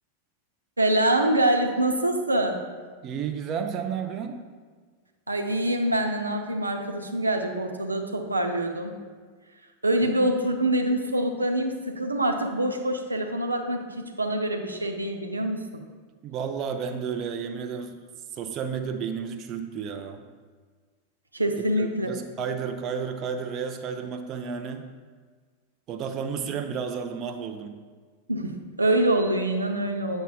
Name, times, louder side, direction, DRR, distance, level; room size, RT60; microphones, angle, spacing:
voice 1, 0.8-2.6 5.3-9.0 9.8-15.8 21.3-22.1 28.3-30.2, right 1 dB, 80° right, 3 dB, 0.5 m, -25 dB
voice 2, 3.0-4.4 10.0-10.1 16.2-18.0 18.3-20.2 21.8-24.9 25.9-27.8, right 6 dB, 35° right, 6 dB, 0.5 m, -32 dB
8.0 x 7.0 x 2.3 m, 1.6 s
figure-of-eight pair, 90°, 0 cm